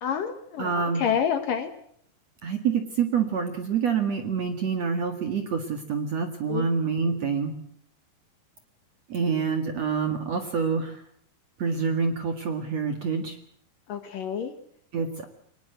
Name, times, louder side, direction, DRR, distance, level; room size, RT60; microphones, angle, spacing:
voice 1, 0.0-1.7 6.5-6.7 13.9-14.5, left 8 dB, 60° left, 9 dB, 2.8 m, -28 dB
voice 2, 0.6-1.0 2.4-7.5 9.1-11.0 11.6-13.4 14.9-15.3, right 6 dB, 50° right, 7 dB, 2.4 m, -27 dB
23.5 x 20.5 x 7.9 m, 0.63 s
omnidirectional pair, 5.1 m